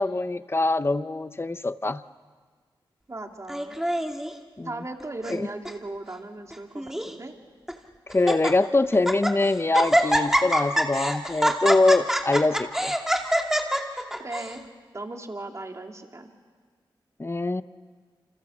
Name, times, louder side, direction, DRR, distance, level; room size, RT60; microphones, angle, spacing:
voice 1, 0.0-2.0 4.6-4.7 5.3-5.5 8.1-12.9 17.2-17.6, left 2 dB, 25° left, 13 dB, 0.9 m, -23 dB
voice 2, 3.1-3.9 4.6-7.3 14.2-14.7 14.9-16.3, right 2 dB, 35° right, 3 dB, 3.1 m, -37 dB
Laughter, 3.5-4.3 5.0-5.4 5.6-5.7 6.5-7.1 7.7-7.8 8.1-8.5 8.9-9.3 9.7-14.5, equal, 5° right, 2.5 m, -25 dB
29.0 x 26.5 x 7.3 m, 1.5 s
cardioid pair, 55°, 9 cm